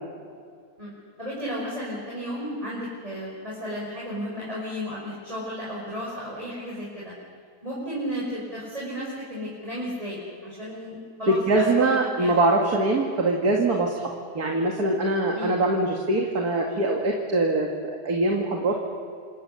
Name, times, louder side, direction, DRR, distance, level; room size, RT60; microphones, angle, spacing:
voice 1, 0.8-7.1 7.6-12.4 15.3-15.6, equal, 20° right, -6 dB, 5.8 m, -33 dB
voice 2, 11.3-14.1 14.3-18.8, right 2 dB, 75° right, 0 dB, 2.6 m, -23 dB
28.0 x 27.0 x 6.9 m, 2.2 s
omnidirectional pair, 1.6 m